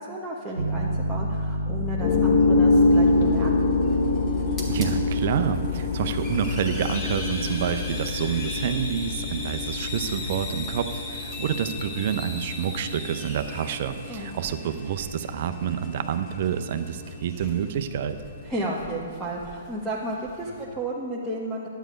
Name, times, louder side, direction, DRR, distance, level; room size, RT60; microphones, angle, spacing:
voice 1, 0.0-3.5 14.1-14.3 18.4-21.7, right 1 dB, 5° right, -7 dB, 1.2 m, -32 dB
Piano, 0.6-10.8, left 3 dB, 85° right, 0.7 m, -32 dB
sound 1, 2.0-18.7, left 2 dB, 45° left, 1.4 m, -27 dB
Hiss, 2.7-20.6, left 2 dB, 15° left, 1.9 m, -40 dB
voice 2, 4.7-18.2, right 8 dB, 50° right, 8 dB, 0.7 m, -28 dB
11.0 x 9.1 x 5.1 m, 2.3 s
figure-of-eight pair, 125°, 0 cm